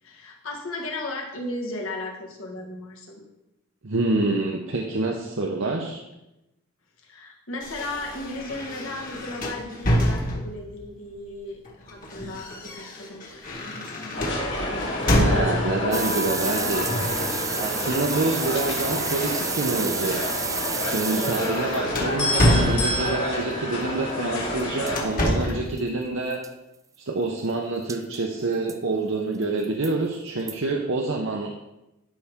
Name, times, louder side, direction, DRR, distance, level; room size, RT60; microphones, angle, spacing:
voice 1, 0.0-3.2 7.0-14.3, left 2 dB, 75° left, 0 dB, 1.8 m, -36 dB
voice 2, 3.8-6.0 15.1-16.9 17.5-20.2 20.8-26.4 27.1-31.5, right 3 dB, 65° right, 0 dB, 0.8 m, -27 dB
sound 1, 7.6-10.7 11.6-15.9 16.9-17.3 17.5-19.9 20.3-20.5 20.9-23.3 24.2-25.7, equal, 40° left, 1.7 m, -27 dB
sound 2, 14.1-25.0, left 1 dB, 60° left, 2.3 m, -28 dB
sound 3, 15.9-21.8 24.6-24.7 24.9-25.0 25.5-25.6 25.8-25.9 26.3-26.5 27.9-28.2 28.7-28.8 29.4-29.9 30.5-30.6, right 6 dB, 15° right, 0.3 m, -31 dB
12.0 x 5.4 x 3.7 m, 0.94 s
head